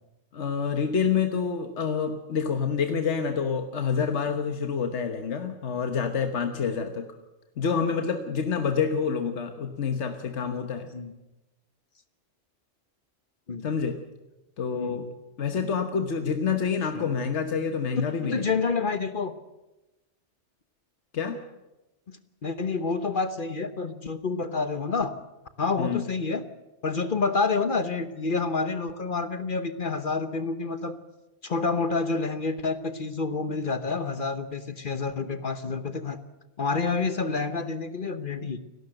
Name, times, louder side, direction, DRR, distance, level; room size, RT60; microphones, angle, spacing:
voice 1, 0.3-7.1 7.6-10.9 13.6-14.0 14.6-15.1 15.4-18.4 21.1-21.4 25.8-26.0, left 6 dB, 75° left, 6 dB, 1.5 m, -27 dB
voice 2, 18.3-19.3 22.1-25.1 25.6-26.4 26.8-31.0 31.4-36.2 36.6-38.6, left 4 dB, 45° left, 10 dB, 1.2 m, -28 dB
29.0 x 12.0 x 7.8 m, 1.0 s
omnidirectional pair, 1.2 m